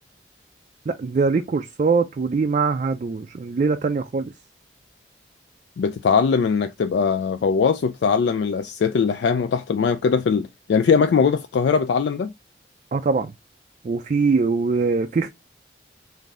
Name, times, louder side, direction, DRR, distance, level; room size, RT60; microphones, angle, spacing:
voice 1, 0.9-4.3 12.9-13.3 13.8-15.3, right 4 dB, 40° right, 0.3 m, -22 dB
voice 2, 5.8-12.3, left 5 dB, 70° left, 0.3 m, -21 dB
3.7 x 2.6 x 3.8 m
head